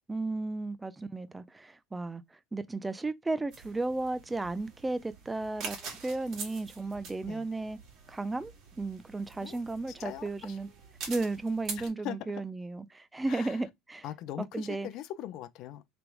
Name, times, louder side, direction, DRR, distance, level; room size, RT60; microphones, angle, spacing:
voice 1, 0.1-7.8 8.1-8.5 8.8-10.7 11.1-14.0 14.4-14.9, right 2 dB, 10° right, 0.5 m, -34 dB
sound 1, 3.5-11.9, right 5 dB, 50° right, 1.8 m, -45 dB
voice 2, 10.0-10.6 11.8-12.2 13.3-13.6 14.0-15.9, left 12 dB, 55° left, 0.6 m, -41 dB
3.4 x 3.0 x 4.7 m
cardioid pair, 130°, 0 cm